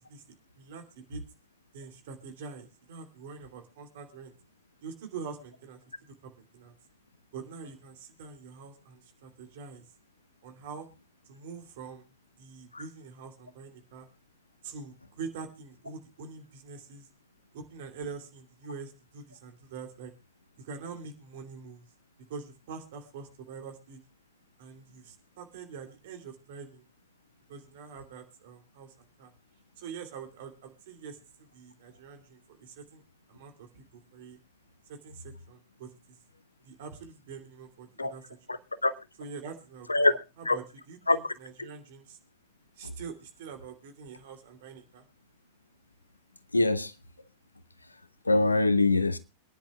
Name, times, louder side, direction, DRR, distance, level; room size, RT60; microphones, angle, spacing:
voice 1, 0.6-1.2 1.7-4.3 4.8-6.7 7.3-9.8 10.4-10.9 11.3-12.1 12.4-14.1 14.6-17.1 17.5-20.1 20.6-21.9 22.3-24.0 24.6-26.8 27.5-29.3 29.8-31.2 31.5-33.0 33.3-34.4 34.9-36.2 36.6-38.3 39.2-42.2 42.8-45.0, right 5 dB, 55° right, 3.0 m, -45 dB
voice 2, 38.5-38.9 39.9-40.1 40.5-40.6 41.1-41.2 42.8-42.9 46.5-46.9 48.3-49.2, left 2 dB, 80° left, 0.8 m, -24 dB
26.5 x 10.5 x 2.3 m
figure-of-eight pair, 90°, 0 cm